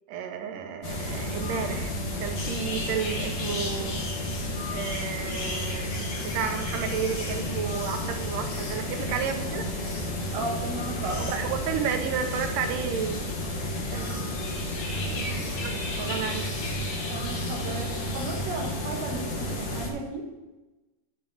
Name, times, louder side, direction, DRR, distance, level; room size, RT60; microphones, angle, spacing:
voice 1, 0.1-1.9 2.2-4.0 4.7-5.9 6.2-9.7 11.2-13.2 13.9-14.6 14.9-16.5, right 7 dB, 90° right, 6 dB, 2.4 m, -32 dB
sound 1, 0.8-19.9, left 1 dB, 55° left, 2.2 m, -32 dB
sound 2, 2.4-18.7, left 2 dB, 90° left, 3.3 m, -40 dB
voice 2, 10.3-11.3 17.1-20.2, right 3 dB, 45° right, -1 dB, 1.7 m, -35 dB
9.2 x 4.2 x 6.9 m, 1.1 s
omnidirectional pair, 3.7 m